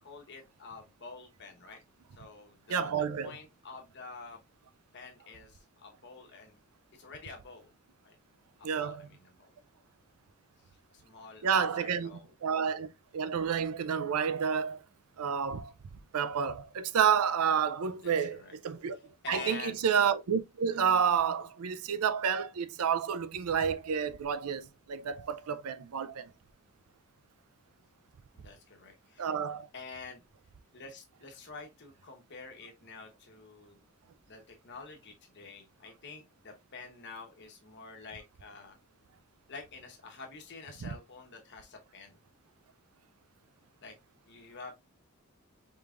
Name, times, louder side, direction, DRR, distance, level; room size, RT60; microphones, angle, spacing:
voice 1, 0.0-1.8 2.1-2.9 3.2-4.4 4.9-6.6 6.9-7.7 8.0-8.2 8.6-9.6 10.6-12.9 17.9-18.5 19.2-19.8 28.3-29.3 29.7-30.2 30.7-33.8 34.3-38.8 39.5-42.2 43.8-44.0 44.3-44.7, left 4 dB, 50° left, 1.1 m, -48 dB
voice 2, 2.7-3.4 8.6-9.1 11.4-14.8 15.2-15.7 16.1-19.0 19.3-26.3 29.2-29.7 40.8-40.9, right 7 dB, 80° right, 0.5 m, -30 dB
4.9 x 3.5 x 2.4 m
head